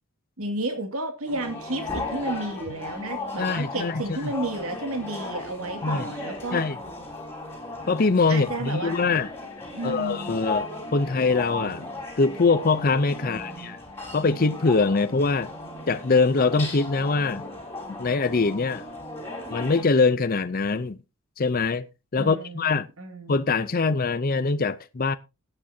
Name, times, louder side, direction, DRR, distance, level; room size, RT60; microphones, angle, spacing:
voice 1, 0.4-6.7 8.3-9.0 9.7-10.4 13.2-13.8 22.2-22.7 23.0-23.4, right 2 dB, 80° right, 2.3 m, -32 dB
sound 1, 1.3-19.8, left 2 dB, 10° left, 4.3 m, -36 dB
voice 2, 3.4-4.2 5.8-6.1 6.5-6.8 7.9-9.3 9.8-11.9 12.2-13.8 14.1-15.5 15.9-17.5 18.0-18.8 19.5-21.0 21.4-21.9 22.1-22.9 23.3-25.1, left 4 dB, 40° left, 0.6 m, -23 dB
18.0 x 8.8 x 2.7 m
head